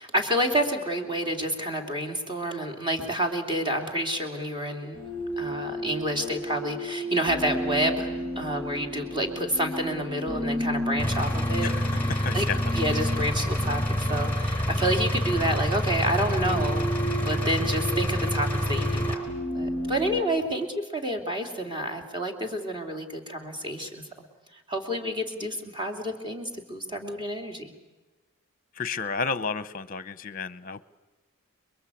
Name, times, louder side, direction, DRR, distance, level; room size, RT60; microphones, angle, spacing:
voice 1, 0.0-5.0 5.4-11.7 11.9-16.9 17.2-20.7 20.9-24.0 24.5-27.7, right 1 dB, 20° right, 4 dB, 3.1 m, -29 dB
sound 1, 4.9-20.2, equal, 70° right, 5.5 m, -34 dB
Engine, 11.0-19.1, equal, 10° left, 4.7 m, -27 dB
voice 2, 11.6-12.0 12.2-12.6 28.7-30.8, left 5 dB, 40° left, 16 dB, 0.9 m, -32 dB
29.5 x 22.0 x 8.5 m, 1.1 s
head